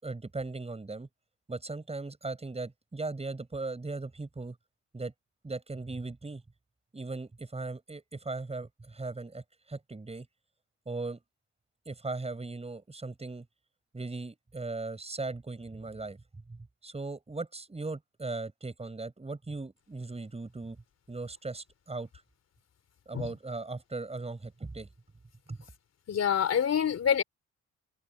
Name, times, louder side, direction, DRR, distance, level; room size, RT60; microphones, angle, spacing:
voice 1, 0.0-1.1 1.5-4.6 4.9-5.1 5.4-6.4 6.9-10.3 10.9-11.2 11.8-13.5 13.9-16.2 16.5-20.8 21.1-22.1 23.1-24.9 25.5-25.6, right 3 dB, 20° right, 7.9 m, -38 dB
voice 2, 26.1-27.2, left 8 dB, 55° left, 3.8 m, -26 dB
cardioid pair, 90°, 30 cm